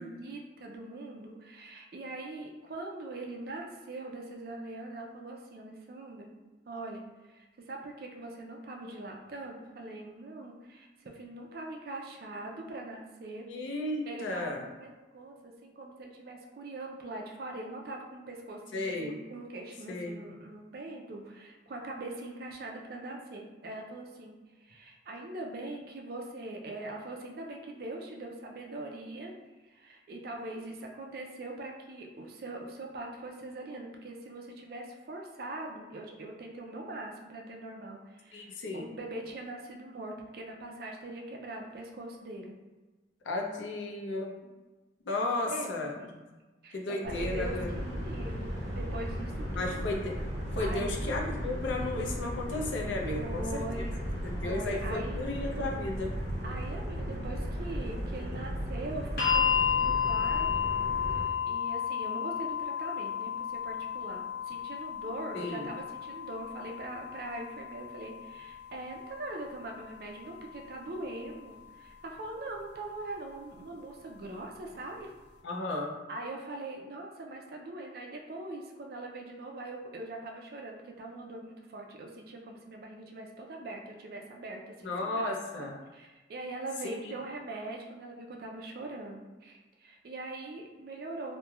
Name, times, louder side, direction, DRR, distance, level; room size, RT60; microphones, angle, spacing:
voice 1, 0.0-6.3 6.7-13.4 14.1-29.3 29.7-42.6 44.4-44.5 45.3-46.2 46.6-49.8 50.6-51.1 53.1-53.9 54.4-55.2 56.4-59.4 59.8-60.7 61.2-75.1 76.1-91.4, right 2 dB, 55° right, 1 dB, 0.4 m, -42 dB
voice 2, 13.5-14.6 18.7-19.2 19.9-20.2 38.3-38.9 43.3-44.3 45.1-45.9 46.7-47.8 49.5-50.1 50.5-53.6 54.2-56.1 65.3-65.7 75.4-75.9 84.8-85.7 86.8-86.9, left 2 dB, 80° left, 1 dB, 0.4 m, -34 dB
sound 1, 47.0-61.2, equal, 40° right, 1.0 m, -36 dB
sound 2, 59.2-71.3 72.3-72.4, left 7 dB, 50° left, 0.9 m, -33 dB
3.0 x 2.1 x 2.3 m, 1.2 s
head